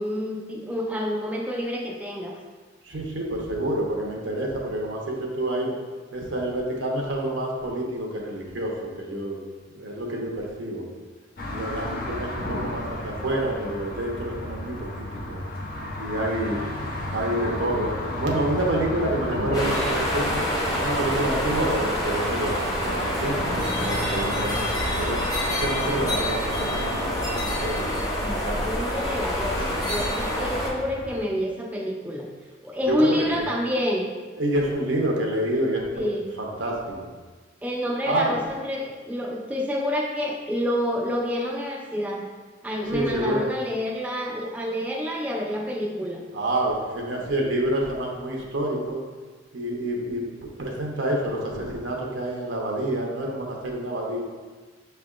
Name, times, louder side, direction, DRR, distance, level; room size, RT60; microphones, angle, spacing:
voice 1, 0.0-2.4 28.2-32.3 32.6-34.1 35.9-36.2 37.6-42.3 42.6-46.2, equal, 10° right, -2 dB, 0.4 m, -28 dB
voice 2, 2.8-5.8 6.1-9.4 9.7-10.8 11.5-15.4 16.0-16.6 17.1-17.9 18.2-20.4 20.7-24.7 24.9-25.2 25.6-27.9 28.2-28.7 32.9-33.5 34.4-36.1 36.4-37.1 38.1-38.3 42.9-43.4 46.3-49.0 49.5-54.2, right 1 dB, 85° right, -1 dB, 0.8 m, -28 dB
sound 1, 11.4-31.3, left 1 dB, 50° left, 0.6 m, -34 dB
sound 2, 19.5-30.7, equal, 20° left, 0.8 m, -27 dB
6.3 x 3.3 x 2.4 m, 1.4 s
head